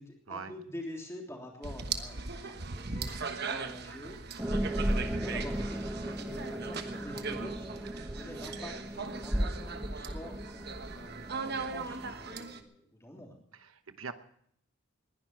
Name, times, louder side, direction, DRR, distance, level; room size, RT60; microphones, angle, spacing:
voice 1, 0.0-4.2 4.6-5.9 6.2-10.4 10.9-13.3, left 1 dB, 15° left, 0 dB, 3.3 m, -46 dB
sound 1, 1.6-12.6, right 4 dB, 50° right, 1.2 m, -39 dB
sound 2, 2.3-12.1, left 1 dB, 40° left, 1.2 m, -56 dB
sound 3, 4.4-12.4, right 1 dB, 10° right, 0.9 m, -36 dB
voice 2, 13.5-14.1, right 5 dB, 80° right, 10 dB, 1.0 m, -42 dB
20.5 x 11.0 x 5.9 m, 0.66 s
head